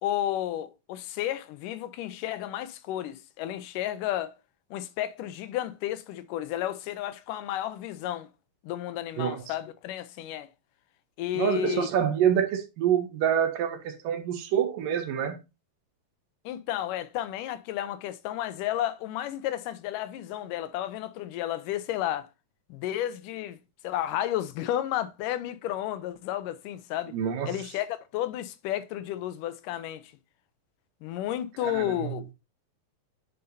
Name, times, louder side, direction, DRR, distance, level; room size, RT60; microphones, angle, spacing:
voice 1, 0.0-4.3 4.7-8.3 8.6-10.5 11.2-11.9 16.5-22.3 22.7-23.6 23.8-27.1 27.5-30.0 31.0-32.3, left 12 dB, 80° left, 2.2 m, -32 dB
voice 2, 11.4-15.4 27.1-27.5 31.6-32.1, right 9 dB, 75° right, 2.9 m, -26 dB
9.4 x 5.5 x 2.6 m
omnidirectional pair, 4.1 m